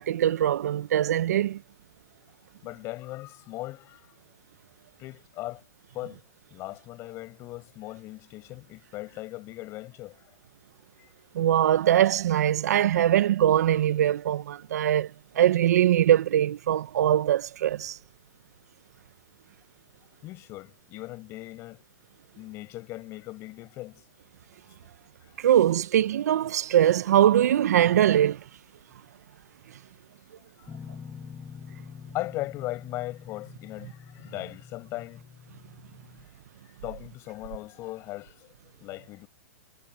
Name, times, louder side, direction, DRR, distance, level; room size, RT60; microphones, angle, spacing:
voice 1, 0.0-1.6 11.3-18.0 25.4-28.4, right 11 dB, 70° right, 0.6 m, -22 dB
voice 2, 2.6-4.1 5.0-5.6 5.9-6.2 6.5-10.3 11.0-11.1 20.2-21.8 22.4-24.0 25.2-25.4 32.1-35.2 36.6-39.3, left 18 dB, 30° left, 6.1 m, -38 dB
sound 1, 30.7-36.3, left 6 dB, 10° left, 1.9 m, -45 dB
hypercardioid pair, 150°, 9 cm